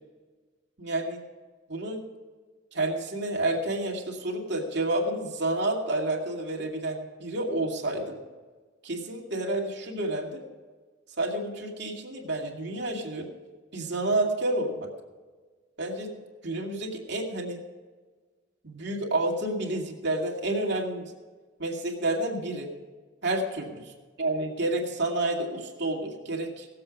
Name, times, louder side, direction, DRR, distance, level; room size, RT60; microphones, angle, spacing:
voice 1, 0.8-1.2 1.7-2.0 2.7-8.2 8.8-10.4 11.2-13.3 13.7-14.8 15.8-16.1 16.4-17.6 18.6-21.1 21.6-22.7 23.2-23.8 24.2-26.7, right 2 dB, 60° right, 0 dB, 2.4 m, -29 dB
18.5 x 7.8 x 5.2 m, 1.4 s
head